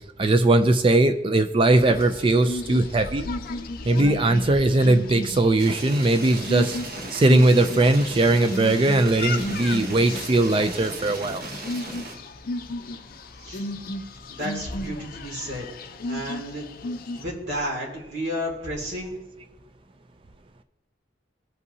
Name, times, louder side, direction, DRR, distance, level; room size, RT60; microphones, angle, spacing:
voice 1, 0.2-3.3 3.9-6.8 7.1-11.4, right 2 dB, 30° right, 9 dB, 0.4 m, -20 dB
sound 1, 1.7-17.2, left 2 dB, 55° left, 0.5 m, -34 dB
sound 2, 5.6-12.2, right 1 dB, 55° right, 1.2 m, -36 dB
voice 2, 13.4-13.7 14.3-15.7 16.1-16.7 17.2-19.2, equal, 70° right, -1 dB, 2.3 m, -32 dB
15.0 x 5.5 x 2.7 m, 1.0 s
head